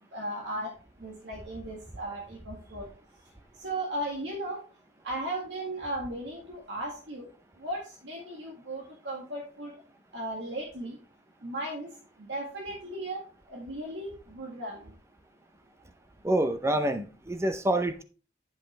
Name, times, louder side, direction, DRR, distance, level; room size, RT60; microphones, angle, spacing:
voice 1, 0.1-0.7 1.0-2.9 3.6-4.6 5.0-7.3 7.6-9.7 10.1-11.0 11.4-11.9 12.2-13.2 13.5-14.9, right 1 dB, 85° right, 1.9 m, -36 dB
voice 2, 16.2-18.0, right 1 dB, 15° right, 0.6 m, -27 dB
10.0 x 5.5 x 3.2 m
head